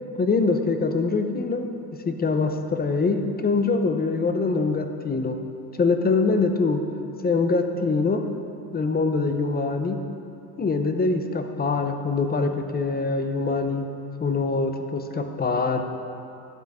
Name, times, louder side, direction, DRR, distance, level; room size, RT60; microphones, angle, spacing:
voice 1, 0.2-1.7 2.1-5.4 5.8-6.8 7.2-8.2 8.7-10.0 10.6-13.9 14.2-15.8, left 4 dB, 20° left, 6 dB, 0.6 m, -24 dB
11.5 x 7.7 x 3.6 m, 2.5 s
cardioid pair, 115°, 45 cm